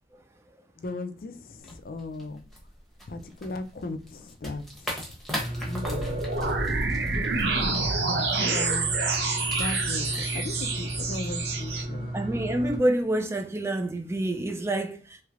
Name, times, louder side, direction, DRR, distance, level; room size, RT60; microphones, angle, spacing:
voice 1, 0.8-2.5 3.1-5.1 5.6-6.8 8.1-9.0 9.5-12.1, left 2 dB, 55° left, 0.4 m, -37 dB
sound 1, 1.6-11.8, equal, ahead, 1.0 m, -41 dB
sound 2, 5.4-12.8, right 1 dB, 35° right, 1.1 m, -34 dB
sound 3, 5.8-11.8, right 3 dB, 65° right, 0.6 m, -28 dB
voice 2, 12.1-15.2, right 1 dB, 15° right, 0.3 m, -27 dB
3.2 x 3.2 x 2.4 m
head